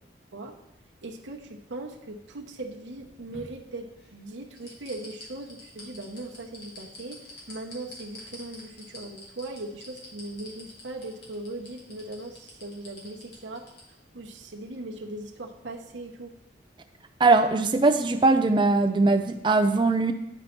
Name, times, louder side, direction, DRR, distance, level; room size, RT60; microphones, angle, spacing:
voice 1, 1.0-13.6 14.1-16.3, right 2 dB, 75° right, 1 dB, 0.8 m, -39 dB
sound 1, 3.0-4.1 4.5-13.8 14.2-14.3, left 2 dB, 60° left, 2.2 m, -46 dB
voice 2, 17.2-20.1, right 3 dB, 25° right, 6 dB, 0.4 m, -21 dB
10.0 x 4.2 x 4.4 m, 0.89 s
head